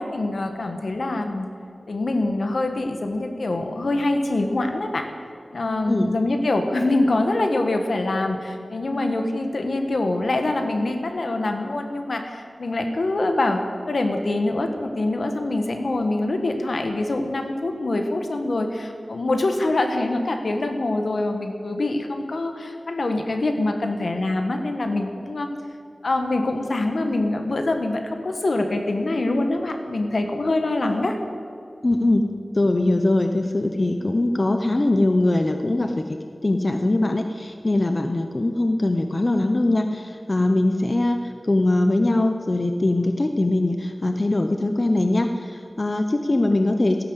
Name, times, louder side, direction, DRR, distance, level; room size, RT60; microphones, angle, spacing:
voice 1, 0.0-1.5 1.9-5.1 5.5-25.5 26.0-31.2, left 2 dB, 75° left, 5 dB, 1.6 m, -24 dB
voice 2, 31.8-32.3 32.5-36.0 36.4-41.2 41.4-47.0, left 2 dB, 40° left, 6 dB, 0.8 m, -21 dB
16.0 x 11.0 x 8.2 m, 2.4 s
wide cardioid pair, 70°, 0 cm